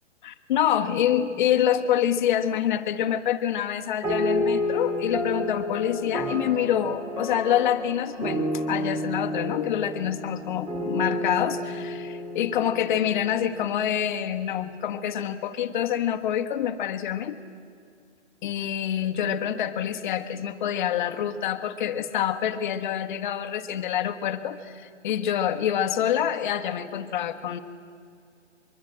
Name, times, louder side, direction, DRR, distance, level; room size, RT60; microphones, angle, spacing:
voice 1, 0.2-17.4 18.4-27.6, left 10 dB, 40° left, 9 dB, 1.5 m, -26 dB
sound 1, 4.0-13.8, left 1 dB, 10° right, 2.6 m, -30 dB
24.0 x 23.0 x 8.9 m, 2.2 s
hypercardioid pair, 140°, 36 cm